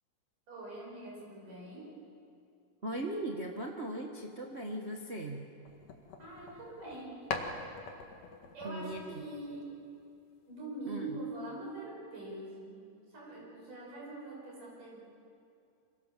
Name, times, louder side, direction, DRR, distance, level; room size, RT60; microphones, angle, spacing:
voice 1, 0.5-1.9 6.2-7.2 8.5-9.8 10.5-12.8 13.1-15.0, right 2 dB, 65° right, -3 dB, 7.7 m, -43 dB
voice 2, 2.8-5.4 8.6-9.2 10.9-11.0, right 1 dB, 40° right, 0 dB, 0.8 m, -38 dB
sound 1, 5.7-7.0 7.3-9.9, left 4 dB, 70° left, 3.5 m, -43 dB
27.5 x 26.0 x 7.6 m, 2.5 s
omnidirectional pair, 4.0 m